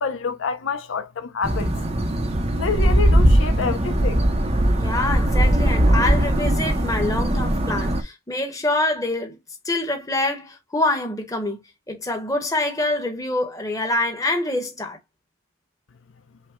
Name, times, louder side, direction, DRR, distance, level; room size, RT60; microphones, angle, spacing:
voice 1, 0.0-1.7 2.6-4.3, left 5 dB, 70° left, 0.5 m, -27 dB
sound 1, 1.4-8.0, right 1 dB, 30° right, 0.6 m, -20 dB
voice 2, 4.8-9.4 9.6-11.6 11.9-15.0, left 2 dB, 15° left, 1.0 m, -25 dB
5.6 x 2.1 x 3.5 m
head